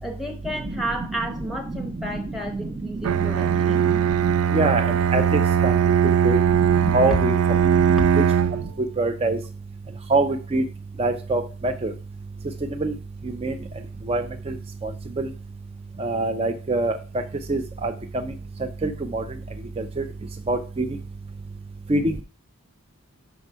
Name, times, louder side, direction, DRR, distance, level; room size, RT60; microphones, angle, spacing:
voice 1, 0.0-3.8 8.0-8.2, right 1 dB, ahead, 4 dB, 0.8 m, -32 dB
Bowed string instrument, 3.0-8.7, right 8 dB, 85° right, 0.4 m, -20 dB
voice 2, 6.9-7.3 9.0-9.4 10.1-10.6 11.0-11.9 12.8-12.9 13.4-13.5 14.1-14.2 15.2-15.3 16.0-16.9 17.5-17.9 18.8-19.2 20.5-20.9 21.9-22.0, right 2 dB, 25° right, 6 dB, 0.4 m, -23 dB
6.0 x 4.7 x 5.4 m, 0.35 s
head